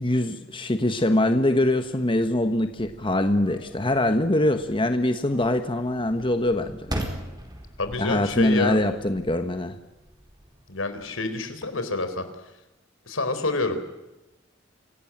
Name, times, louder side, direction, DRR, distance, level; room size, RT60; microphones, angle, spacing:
voice 1, 0.0-6.9 8.0-9.7, left 1 dB, 25° left, 7 dB, 1.3 m, -23 dB
sound 1, 0.9-11.8, right 1 dB, 20° right, 4.2 m, -41 dB
voice 2, 7.8-8.8 10.7-12.3 13.1-13.8, left 3 dB, 80° left, 9 dB, 4.0 m, -27 dB
26.5 x 17.0 x 8.8 m, 1.0 s
head